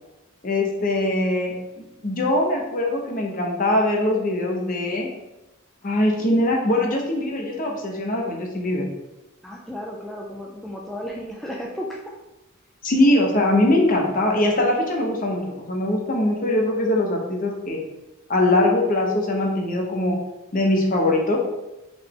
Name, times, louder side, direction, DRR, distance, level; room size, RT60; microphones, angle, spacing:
voice 1, 0.4-5.1 5.8-8.9 12.8-17.8 18.3-20.2 20.5-21.4, left 1 dB, 40° left, 0 dB, 0.8 m, -22 dB
voice 2, 9.4-12.1, equal, ahead, -2 dB, 0.3 m, -34 dB
3.9 x 3.3 x 3.6 m, 1.0 s
head